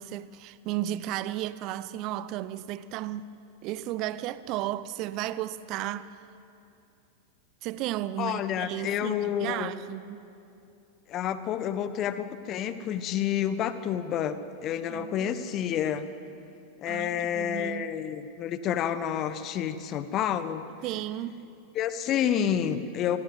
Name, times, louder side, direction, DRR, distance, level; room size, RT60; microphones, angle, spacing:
voice 1, 0.0-3.3 3.6-6.1 7.6-10.2 14.9-15.4 16.9-17.9 20.8-21.5, right 13 dB, 40° right, 0.7 m, -34 dB
voice 2, 8.2-9.7 11.1-16.1 16.8-20.7 21.7-23.2, left 9 dB, 35° left, 1.3 m, -29 dB
27.0 x 20.0 x 8.0 m
figure-of-eight pair, 90°, 0 cm